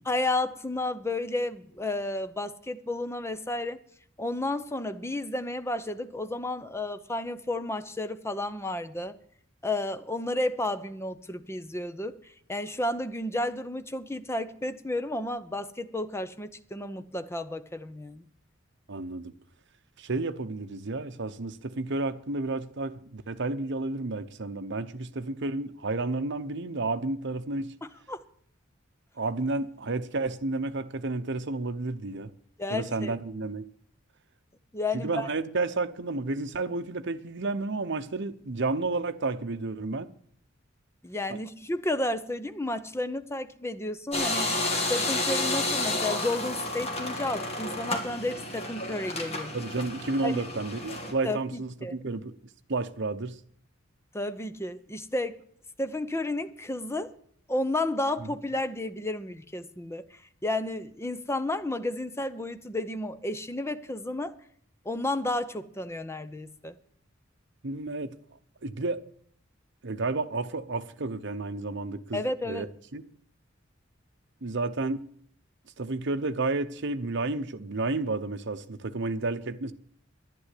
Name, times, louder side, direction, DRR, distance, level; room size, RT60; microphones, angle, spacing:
voice 1, 0.1-3.8 4.2-9.2 9.6-12.2 12.5-18.2 28.1-28.2 32.6-33.1 34.7-35.3 41.0-44.5 44.9-49.5 50.2-50.4 51.2-52.0 54.1-55.4 55.8-57.1 57.5-60.0 60.4-64.3 64.8-66.8 72.1-72.7, left 2 dB, 15° left, 0.8 m, -32 dB
voice 2, 18.9-19.3 20.0-27.7 29.2-32.3 32.7-33.6 34.9-40.1 41.3-41.4 49.5-52.3 52.7-53.4 58.2-58.3 67.6-68.2 68.6-69.0 69.8-72.7 72.9-73.0 74.4-75.0 75.8-79.7, right 3 dB, 60° right, 0.9 m, -31 dB
sound 1, 44.1-51.1, left 2 dB, 30° left, 2.7 m, -31 dB
11.0 x 11.0 x 8.4 m
head